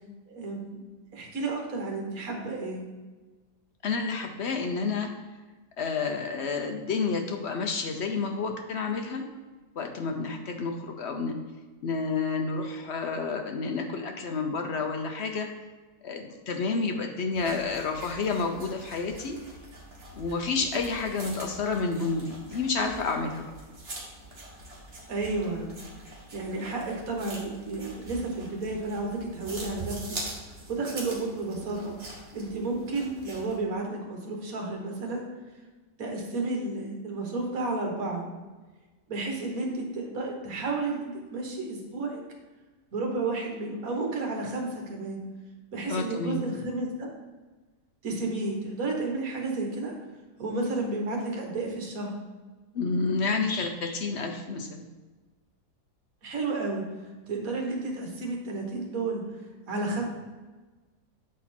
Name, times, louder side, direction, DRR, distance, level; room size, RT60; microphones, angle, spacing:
voice 1, 0.3-0.8 1.1-2.8 25.1-25.7 26.3-30.0 30.7-31.9 32.3-35.2 36.0-38.2 39.1-42.2 42.9-45.2 45.7-47.1 48.0-49.9 50.4-52.1 56.2-56.8 57.3-59.2 59.7-60.1, right 3 dB, 60° right, 1 dB, 1.6 m, -32 dB
voice 2, 3.8-5.1 5.8-9.2 9.8-11.4 11.8-15.5 16.0-19.4 20.2-23.4 45.9-46.4 52.7-54.9, left 4 dB, 60° left, 4 dB, 0.7 m, -30 dB
sound 1, 17.3-33.6, right 2 dB, 40° right, 1.5 m, -44 dB
7.3 x 4.2 x 4.3 m, 1.3 s
omnidirectional pair, 1.7 m